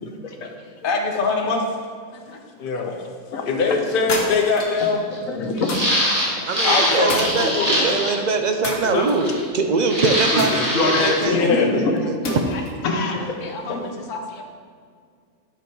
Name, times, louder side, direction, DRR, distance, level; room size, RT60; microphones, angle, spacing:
voice 1, 0.0-0.5 2.3-2.4 2.7-3.0 3.3-3.8 4.0-4.2 4.8-5.7 6.4-6.5 11.2-12.0 12.8-13.9, left 3 dB, 85° left, 3 dB, 1.4 m, -27 dB
voice 2, 0.8-1.6 2.1-2.9 3.4-5.0 6.6-7.8 8.8-9.5 10.3-11.8 12.9-13.1 13.4-13.8 14.1-14.4, left 4 dB, 45° left, 2 dB, 1.0 m, -23 dB
sound 1, 4.1-4.8 5.7-6.1 7.1-7.9 8.6-9.4 10.4-11.3 12.2-12.8, left 2 dB, 65° left, 1.5 m, -29 dB
sound 2, 4.8-4.9 5.1-5.2 5.6-8.2 9.1-9.6 9.9-11.2, equal, 30° right, 1.7 m, -23 dB
voice 3, 6.5-12.4, right 4 dB, 45° right, 5 dB, 0.6 m, -23 dB
8.5 x 6.1 x 4.6 m, 2.1 s
omnidirectional pair, 1.4 m